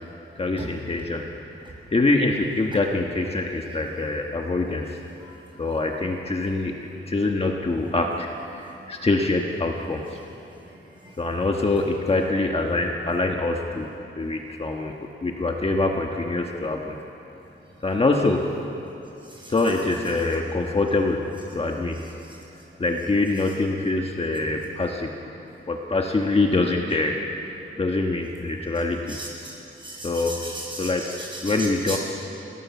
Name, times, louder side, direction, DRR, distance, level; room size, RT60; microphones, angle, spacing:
voice 1, 0.4-1.3 1.5-5.0 5.6-10.2 11.2-13.9 14.1-17.0 17.8-18.5 19.5-21.2 21.5-22.0 22.8-25.1 25.7-29.2 30.0-30.4 30.8-31.1 31.4-32.0, left 2 dB, 30° left, 1 dB, 1.3 m, -24 dB
voice 2, 29.1-29.5 29.8-31.5 31.9-32.0, right 1 dB, 25° right, -2 dB, 6.5 m, -36 dB
29.5 x 17.5 x 7.1 m, 2.9 s
wide cardioid pair, 140°, 21 cm